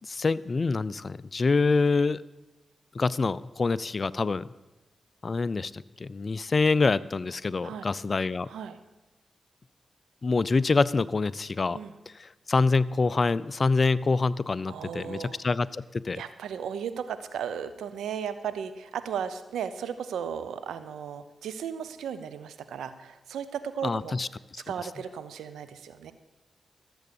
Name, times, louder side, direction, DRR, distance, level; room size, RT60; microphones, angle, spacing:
voice 1, 0.0-2.2 2.9-4.5 5.2-8.5 10.2-11.8 12.2-16.2 23.8-24.3 24.5-24.6, left 4 dB, 50° left, 18 dB, 0.4 m, -26 dB
voice 2, 8.5-8.8 11.7-11.9 14.7-15.4 16.2-24.2 24.7-26.1, right 8 dB, 90° right, 12 dB, 0.7 m, -35 dB
14.0 x 7.9 x 6.9 m, 1.1 s
supercardioid pair, 45°, 0 cm